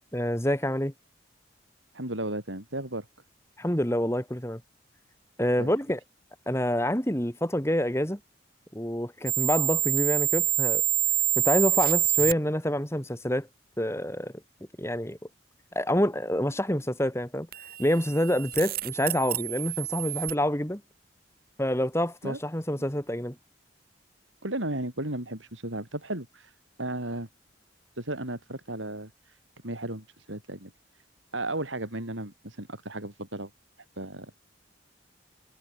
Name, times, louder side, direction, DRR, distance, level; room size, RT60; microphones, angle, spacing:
voice 1, 0.1-0.9 3.6-4.6 5.4-6.0 6.5-8.2 8.7-10.8 11.4-13.5 13.8-14.3 14.8-15.2 15.7-17.5 17.8-20.8 21.6-23.3, equal, 15° left, 3.0 m, -27 dB
voice 2, 1.9-3.1 5.6-5.7 22.2-22.4 24.4-27.3 28.0-29.4 29.6-30.7 31.3-33.5 34.0-34.3, right 1 dB, 90° right, 6.5 m, -34 dB
sound 1, 9.3-12.3 17.5-20.3, right 16 dB, 50° right, 3.4 m, -27 dB
head